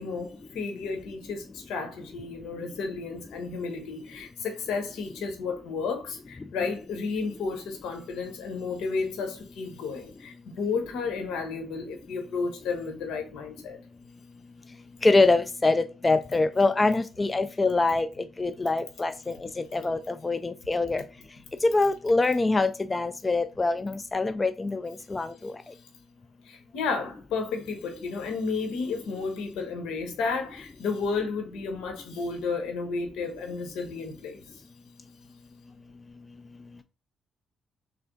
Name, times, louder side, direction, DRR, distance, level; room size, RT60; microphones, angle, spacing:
voice 1, 0.0-13.8 26.4-34.4, left 4 dB, 85° left, 1.1 m, -32 dB
voice 2, 15.0-21.0 21.6-25.5, left 3 dB, 25° left, 0.3 m, -24 dB
3.5 x 3.3 x 3.7 m
cardioid pair, 90°, 0 cm